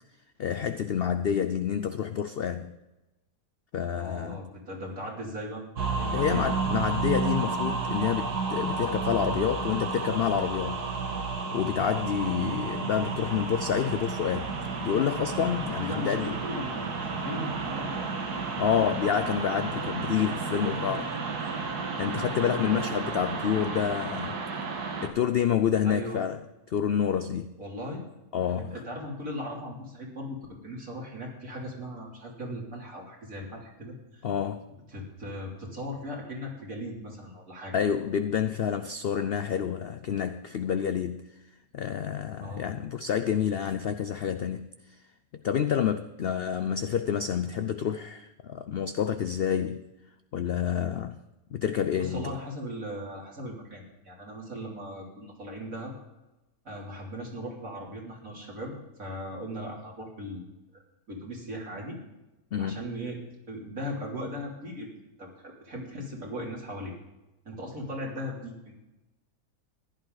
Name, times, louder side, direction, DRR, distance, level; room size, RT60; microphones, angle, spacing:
voice 1, 0.4-2.7 3.7-4.4 6.1-10.8 11.5-14.5 14.8-16.3 18.6-21.1 22.0-24.4 25.0-26.4 26.7-27.6 28.3-28.8 34.2-34.6 37.7-41.2 41.7-44.7 45.4-49.8 50.3-51.2 51.5-52.3 62.5-62.9, left 8 dB, 70° left, 11 dB, 0.5 m, -28 dB
voice 2, 4.0-5.6 6.0-6.5 15.8-18.1 20.5-21.2 22.4-23.1 25.8-26.2 27.6-28.0 28.6-30.4 30.6-34.2 34.9-37.8 42.4-42.7 51.9-55.9 56.7-58.7 59.0-60.4 61.1-62.0 62.6-63.2 63.5-64.9 65.2-66.9 67.5-68.8, equal, 60° right, -3 dB, 3.6 m, -38 dB
sound 1, 5.8-25.1, right 4 dB, 90° right, 2.0 m, -32 dB
15.5 x 11.5 x 4.0 m, 1.0 s
omnidirectional pair, 1.6 m